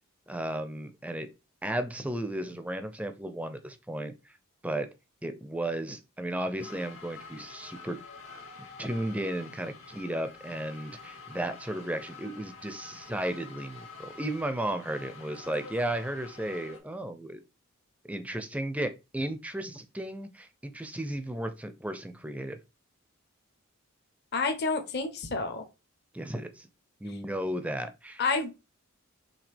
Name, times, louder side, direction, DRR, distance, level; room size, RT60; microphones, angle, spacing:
voice 1, 0.3-1.3 1.6-4.1 4.6-4.9 5.2-8.0 8.8-17.4 18.0-22.6 26.1-26.7 27.0-28.2, right 1 dB, 5° right, 0.4 m, -34 dB
sound 1, 6.6-16.8, left 4 dB, 70° left, 1.5 m, -48 dB
voice 2, 24.3-25.7 28.2-28.5, left 4 dB, 50° left, 0.7 m, -29 dB
5.0 x 3.1 x 3.4 m
head